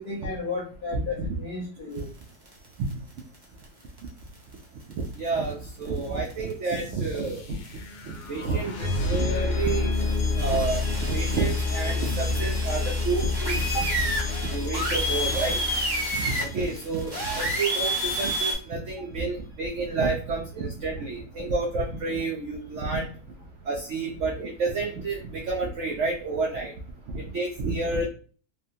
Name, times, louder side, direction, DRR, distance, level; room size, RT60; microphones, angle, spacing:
voice 1, 0.0-2.1 13.7-13.9, left 2 dB, 70° left, -4 dB, 0.5 m, -33 dB
voice 2, 0.9-1.3 5.0-7.6 8.0-10.0 10.4-13.6 14.5-15.6 16.1-23.1 23.6-26.7 27.1-28.1, right 3 dB, 80° right, 0 dB, 0.6 m, -29 dB
sound 1, 2.2-2.9 3.2-3.3 3.6-3.7 4.0-4.1 4.9-5.3 5.8-5.9 6.2-6.5 7.2-7.4 7.6-7.7 8.1-8.5 9.8-18.5, equal, 30° right, 0.4 m, -30 dB
sound 2, 6.7-17.5, left 3 dB, 85° left, 1.3 m, -29 dB
3.2 x 2.1 x 2.6 m, 0.40 s
omnidirectional pair, 1.8 m